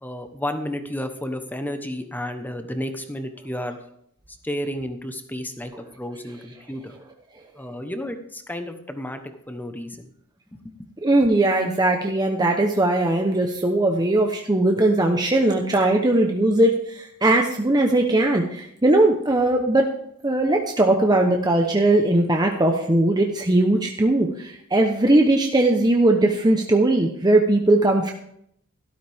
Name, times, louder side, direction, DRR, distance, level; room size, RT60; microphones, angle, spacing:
voice 1, 0.0-3.8 4.4-5.7 6.0-6.9 7.6-10.1 10.5-10.7, left 1 dB, 10° left, 7 dB, 1.1 m, -32 dB
voice 2, 11.0-19.9 20.2-28.1, right 2 dB, 20° right, 2 dB, 0.9 m, -19 dB
12.5 x 12.5 x 3.6 m, 0.71 s
head